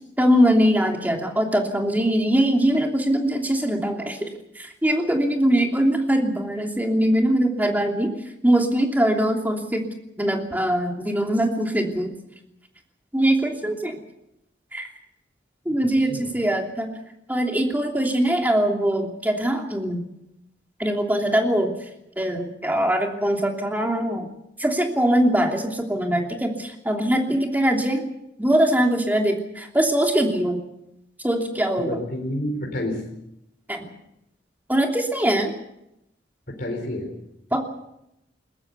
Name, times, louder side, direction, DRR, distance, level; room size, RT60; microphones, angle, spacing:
voice 1, 0.0-8.1 8.4-9.9 10.2-12.1 13.1-14.0 14.7-14.9 15.6-16.9 17.3-20.0 20.8-21.7 22.2-24.3 24.6-28.0 28.4-30.6 31.2-32.0 33.7-33.9 34.7-35.5 37.5-37.7, right 1 dB, 10° right, 2 dB, 3.0 m, -22 dB
voice 2, 16.0-16.3 31.8-33.1 36.5-37.1, left 1 dB, 50° left, 0 dB, 4.4 m, -29 dB
21.5 x 20.5 x 6.9 m, 0.84 s
head